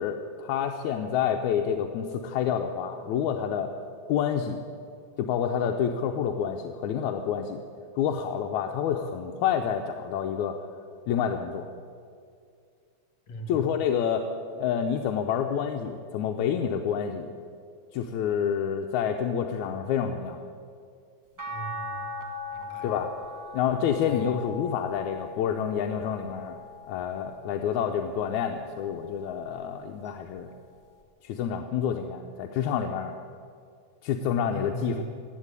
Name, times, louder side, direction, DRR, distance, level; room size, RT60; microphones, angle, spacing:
voice 1, 0.0-3.7 4.1-4.6 5.2-7.6 8.0-10.6 11.1-11.7 13.5-14.3 14.5-17.3 17.9-20.5 22.8-23.1 23.5-26.6 26.9-30.5 31.2-33.1 34.0-35.0, left 8 dB, 85° left, 4 dB, 2.1 m, -28 dB
voice 2, 13.3-13.6 21.4-22.0 22.5-22.9 24.1-24.2 34.5-35.1, right 1 dB, 65° left, 4 dB, 2.9 m, -39 dB
sound 1, 21.4-27.7 28.2-29.6 31.0-31.1, left 2 dB, 15° right, 0.6 m, -40 dB
16.0 x 9.1 x 9.7 m, 2.3 s
omnidirectional pair, 3.3 m